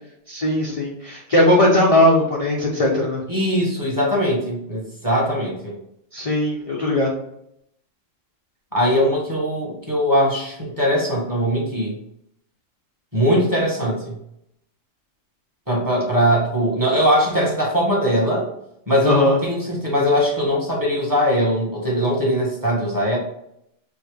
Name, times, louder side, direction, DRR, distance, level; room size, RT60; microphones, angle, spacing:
voice 1, 0.3-3.2 6.1-7.1 19.0-19.4, left 1 dB, 35° left, -3 dB, 0.7 m, -18 dB
voice 2, 3.3-5.7 8.7-11.9 13.1-14.1 15.7-18.5 18.9-23.2, equal, 15° right, -4 dB, 1.4 m, -20 dB
4.7 x 2.8 x 3.2 m, 0.76 s
omnidirectional pair, 1.3 m